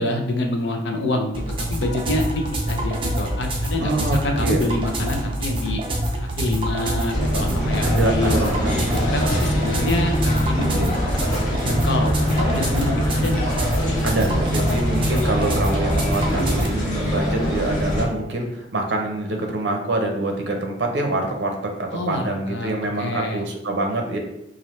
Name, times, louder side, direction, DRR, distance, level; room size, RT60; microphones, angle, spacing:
voice 1, 0.0-5.8 6.4-8.3 8.7-13.4 13.7-14.4 21.9-22.7 23.0-23.4, left 2 dB, 70° left, 3 dB, 0.6 m, -26 dB
sound 1, 1.3-16.7, right 1 dB, 25° right, 0.5 m, -26 dB
voice 2, 3.8-4.6 7.8-8.7 14.0-24.2, right 2 dB, 70° right, 2 dB, 0.6 m, -25 dB
sound 2, 7.1-18.0, equal, 40° left, 1.3 m, -23 dB
4.3 x 2.5 x 3.1 m, 0.83 s
head